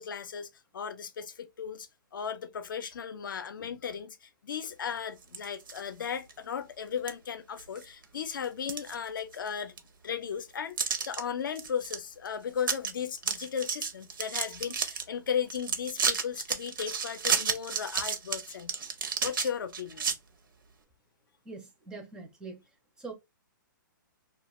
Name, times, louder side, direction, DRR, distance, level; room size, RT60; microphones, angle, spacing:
voice 1, 0.0-9.7 10.0-18.8 19.2-20.2, left 7 dB, 80° left, 0.5 m, -36 dB
sound 1, 5.2-5.8 6.3-6.4 7.1-7.2 7.6-8.0 8.4-9.5 9.8-9.9 10.8-11.2 11.6-12.0 12.3-12.4 12.6-12.9 13.2-15.0 15.5-20.1, right 6 dB, 80° right, 0.7 m, -31 dB
voice 2, 21.5-22.6 23.0-23.1, right 4 dB, 5° right, 0.4 m, -43 dB
2.3 x 2.3 x 2.9 m
hypercardioid pair, 160°, 11 cm